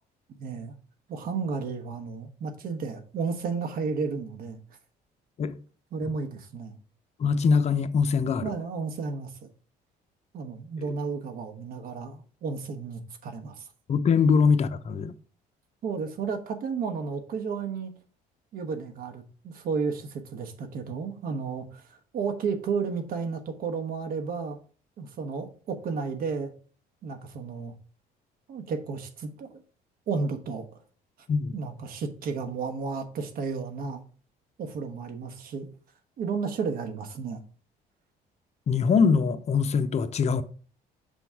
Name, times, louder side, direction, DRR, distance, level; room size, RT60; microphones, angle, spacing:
voice 1, 0.4-0.7 1.1-4.6 5.9-6.8 8.4-9.3 10.3-13.7 15.8-17.9 18.5-21.8 22.1-24.6 25.0-26.5 27.0-27.7 28.5-29.6 30.1-30.6 31.5-34.0 34.6-35.7 36.2-37.4, right 5 dB, 60° right, 1.2 m, -32 dB
voice 2, 7.2-8.5 13.9-15.1 31.3-31.6 38.7-40.4, left 5 dB, 40° left, 0.6 m, -23 dB
6.9 x 3.7 x 4.5 m
cardioid pair, 110°, 17 cm